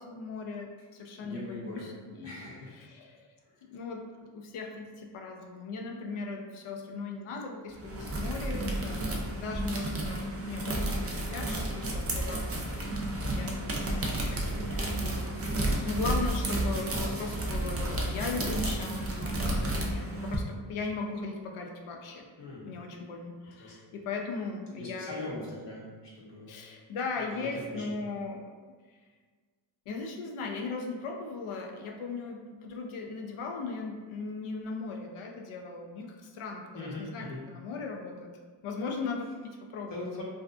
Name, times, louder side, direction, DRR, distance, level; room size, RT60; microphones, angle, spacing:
voice 1, 0.0-2.5 2.7-3.3 3.6-22.3 22.6-25.3 26.5-28.4 29.9-38.3 38.6-40.1, left 4 dB, 85° left, 1 dB, 0.5 m, -38 dB
voice 2, 1.2-1.9 2.2-2.7 22.4-22.7 23.6-23.7 24.8-25.8 26.1-26.6 27.2-27.9 36.7-37.4 39.9-40.2, left 2 dB, 60° left, -5 dB, 0.9 m, -41 dB
sound 1, 7.7-20.4, right 1 dB, 30° right, 0.4 m, -31 dB
2.5 x 2.3 x 2.3 m, 1.5 s
wide cardioid pair, 100°, 48 cm